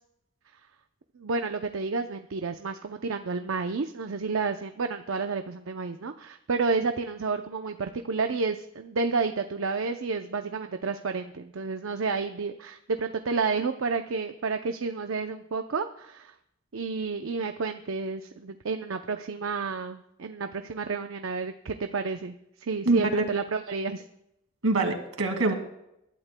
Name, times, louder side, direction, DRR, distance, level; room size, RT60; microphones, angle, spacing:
voice 1, 1.2-16.3 16.7-24.0, right 4 dB, 70° right, 7 dB, 0.6 m, -30 dB
voice 2, 22.9-23.2 24.6-25.5, right 2 dB, 90° right, 5 dB, 2.2 m, -24 dB
24.5 x 12.5 x 2.2 m, 0.82 s
head